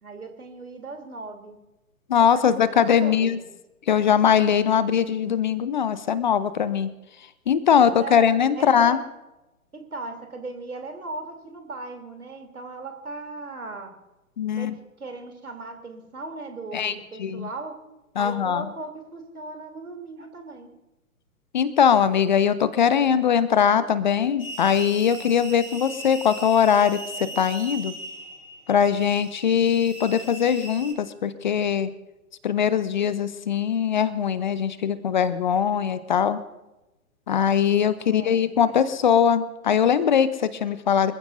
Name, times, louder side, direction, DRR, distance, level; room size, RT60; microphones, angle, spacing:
voice 1, 0.0-1.6 2.2-3.5 7.7-8.3 8.6-9.0 9.7-13.9 14.5-17.7 18.2-20.7 38.1-38.3 38.7-38.8, right 3 dB, 75° right, 4 dB, 3.3 m, -37 dB
voice 2, 2.1-3.4 3.9-6.9 7.5-9.0 14.4-14.8 16.7-17.5 18.2-18.7 21.5-27.9 28.7-31.9 32.4-36.4 37.3-41.1, left 8 dB, 30° left, 15 dB, 0.7 m, -21 dB
sound 1, 24.4-30.9, right 1 dB, 65° left, 4.5 m, -39 dB
26.0 x 15.0 x 2.7 m, 0.98 s
figure-of-eight pair, 120°, 44 cm